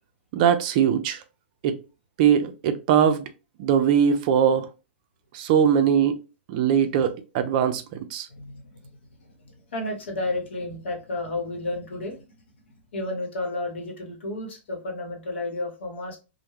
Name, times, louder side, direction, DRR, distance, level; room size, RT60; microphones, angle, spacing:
voice 1, 0.3-1.2 1.6-1.8 2.2-3.3 3.6-4.7 5.3-6.2 6.5-8.3, right 8 dB, 45° right, 0.4 m, -21 dB
voice 2, 8.3-8.6 9.2-9.3 9.7-12.2 12.9-16.2, left 2 dB, 70° left, 0.9 m, -31 dB
2.2 x 2.1 x 3.1 m
hypercardioid pair, 125°, 6 cm